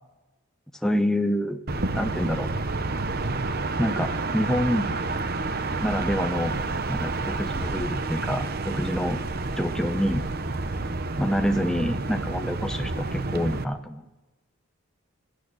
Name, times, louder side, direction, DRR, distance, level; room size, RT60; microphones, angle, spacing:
voice 1, 0.8-1.6 1.9-2.5 3.8-4.9 5.8-6.6 6.9-9.2 9.6-10.3 11.2-14.0, equal, 5° left, 6 dB, 0.7 m, -27 dB
sound 1, 1.7-13.6, right 3 dB, 45° right, 0.8 m, -29 dB
18.5 x 9.1 x 8.6 m, 1.1 s
head